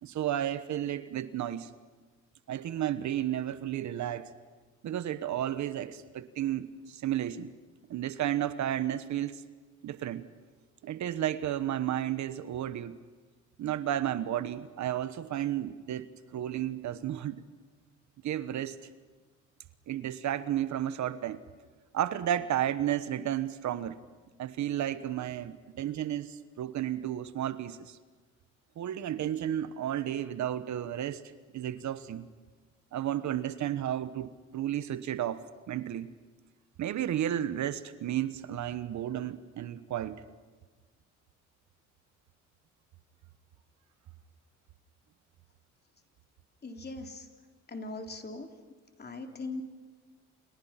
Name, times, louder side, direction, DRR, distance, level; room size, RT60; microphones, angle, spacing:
voice 1, 0.0-1.7 2.5-4.3 4.8-7.5 7.9-9.4 9.8-10.2 10.8-13.0 13.6-16.1 16.3-17.4 18.2-18.8 19.9-21.4 21.9-24.0 24.4-28.0 28.8-31.2 31.5-32.2 32.9-36.1 36.8-40.2, right 11 dB, 70° right, 13 dB, 1.2 m, -32 dB
voice 2, 46.6-47.3 47.7-48.5 49.0-49.6, left 3 dB, 35° left, 4 dB, 3.4 m, -40 dB
29.0 x 28.5 x 5.9 m, 1.3 s
cardioid pair, 90°, 30 cm